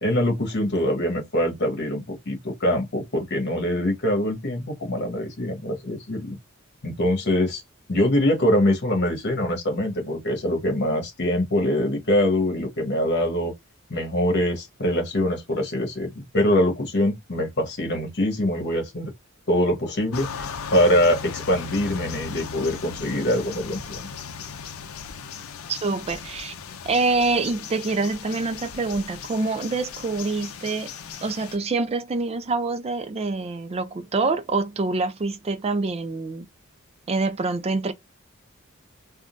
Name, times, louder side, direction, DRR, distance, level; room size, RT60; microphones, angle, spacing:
voice 1, 0.0-6.4 6.8-7.6 7.9-13.5 13.9-19.1 19.5-24.1, left 1 dB, 55° left, 1.3 m, -24 dB
sound 1, 20.1-31.6, left 6 dB, 75° left, 0.5 m, -37 dB
voice 2, 25.7-26.5 26.9-30.9 31.2-36.5 37.1-37.9, right 3 dB, 30° right, 0.4 m, -26 dB
3.7 x 2.2 x 2.5 m
head